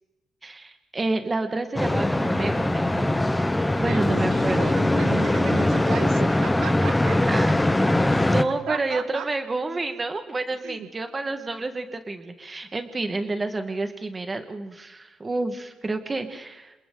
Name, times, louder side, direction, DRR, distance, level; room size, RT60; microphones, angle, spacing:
voice 1, 0.4-3.1 3.7-4.7 7.3-7.5 8.2-16.7, right 2 dB, 20° right, 7 dB, 1.5 m, -29 dB
sound 1, 1.8-8.4, left 1 dB, 5° left, 0.8 m, -21 dB
voice 2, 3.8-7.2 8.1-9.3 10.6-10.9, right 8 dB, 75° right, 9 dB, 1.5 m, -35 dB
28.0 x 27.0 x 3.9 m, 1.1 s
cardioid pair, 170°, 0 cm